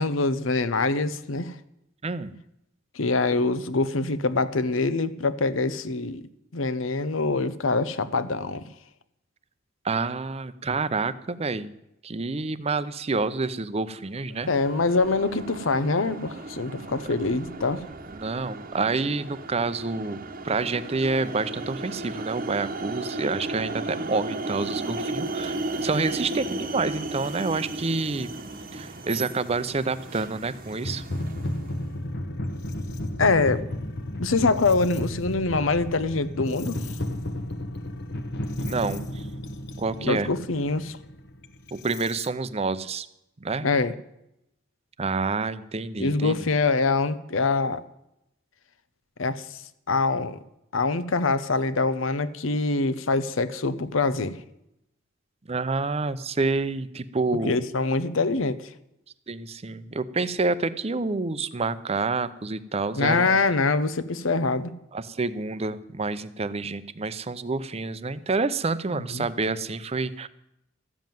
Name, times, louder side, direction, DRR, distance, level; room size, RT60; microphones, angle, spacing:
voice 1, 0.0-1.6 2.9-6.2 6.5-8.7 14.5-17.8 33.2-33.6 34.2-36.8 40.0-41.0 43.6-43.9 46.0-47.8 49.2-49.4 49.9-50.4 50.7-54.4 57.4-58.7 62.9-64.7 68.9-69.3, left 3 dB, 90° left, 14 dB, 0.8 m, -24 dB
voice 2, 2.0-2.3 9.8-11.7 12.0-14.5 18.1-20.2 20.4-28.3 28.7-31.0 38.6-39.2 39.8-40.3 41.7-43.1 43.4-43.7 45.0-46.4 55.5-57.6 59.3-63.4 64.9-70.3, right 3 dB, 30° right, 14 dB, 0.6 m, -28 dB
sound 1, 14.3-31.8, right 2 dB, 45° right, 1.0 m, -35 dB
sound 2, 29.7-29.8 30.7-42.3, left 1 dB, 60° left, 1.0 m, -33 dB
13.5 x 7.4 x 9.2 m, 0.84 s
head